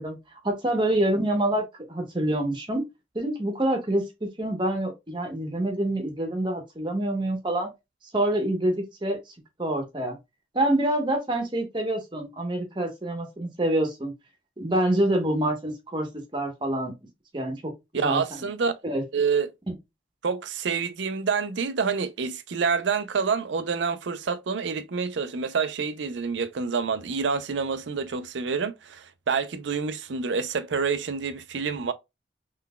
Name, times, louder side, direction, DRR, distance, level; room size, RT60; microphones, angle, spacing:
voice 1, 0.0-2.9 3.1-7.7 8.1-9.2 9.6-10.2 10.5-14.1 14.6-16.1 16.3-16.9 17.3-17.7 18.0-18.5 18.8-19.0 19.7-19.8, right 1 dB, 25° right, 1.0 m, -26 dB
voice 2, 17.9-18.7 19.1-19.5 20.2-31.9, right 5 dB, 90° right, 0.5 m, -27 dB
3.9 x 3.3 x 2.2 m
head